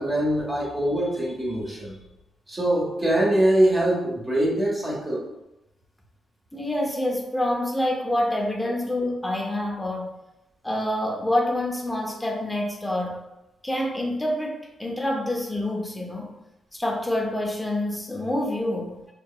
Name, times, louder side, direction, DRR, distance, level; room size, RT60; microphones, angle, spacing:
voice 1, 0.0-2.0 2.5-5.3, right 1 dB, 20° right, -5 dB, 1.3 m, -23 dB
voice 2, 6.5-10.1 10.6-13.2 13.6-16.3 16.7-19.0, left 1 dB, 10° left, 1 dB, 0.7 m, -27 dB
4.5 x 3.2 x 2.3 m, 0.92 s
cardioid pair, 115°, 0 cm